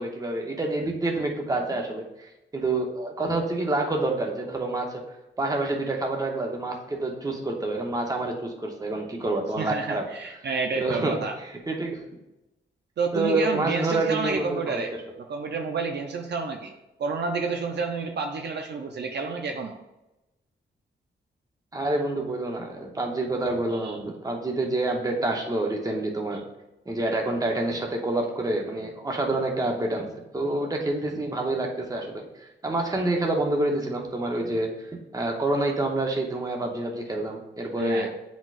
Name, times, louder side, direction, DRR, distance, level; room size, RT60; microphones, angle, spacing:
voice 1, 0.0-5.0 5.4-10.0 10.8-12.0 13.1-14.8 21.7-26.4 26.9-32.2 32.6-34.7 35.1-38.1, right 2 dB, 20° right, 1 dB, 0.8 m, -27 dB
voice 2, 9.6-11.4 13.0-14.9 15.3-16.7 17.0-19.8 23.8-24.0 37.8-38.1, right 4 dB, 60° right, 3 dB, 0.6 m, -29 dB
9.3 x 4.1 x 2.5 m, 0.97 s
wide cardioid pair, 135°, 19 cm